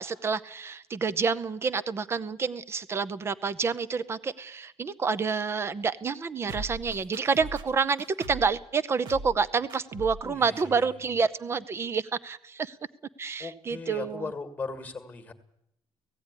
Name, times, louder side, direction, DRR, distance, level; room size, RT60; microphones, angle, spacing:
voice 1, 0.0-12.8 13.2-14.3, right 5 dB, 25° right, 15 dB, 0.7 m, -28 dB
sound 1, 6.5-8.6 9.1-9.4 9.7-10.3 10.6-10.7, right 2 dB, 45° right, 1.6 m, -40 dB
voice 2, 10.2-10.7 13.4-15.3, left 4 dB, 15° left, 8 dB, 1.8 m, -37 dB
17.0 x 16.0 x 9.7 m, 0.79 s
cardioid pair, 175°, 11 cm